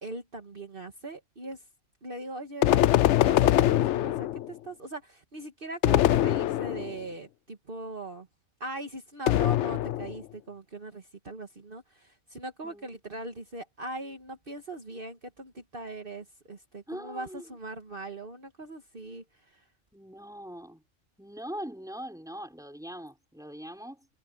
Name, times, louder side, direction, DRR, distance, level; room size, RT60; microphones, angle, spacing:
voice 1, 0.0-1.6 2.0-2.7 3.2-8.3 8.6-19.6, right 2 dB, 45° right, 1.9 m, -40 dB
sound 1, 2.6-4.6 5.8-7.0 9.3-10.2, left 13 dB, 70° left, 0.8 m, -23 dB
voice 2, 16.9-17.5 19.9-20.8 21.2-24.1, equal, 5° right, 4.5 m, -41 dB
omnidirectional pair, 1.3 m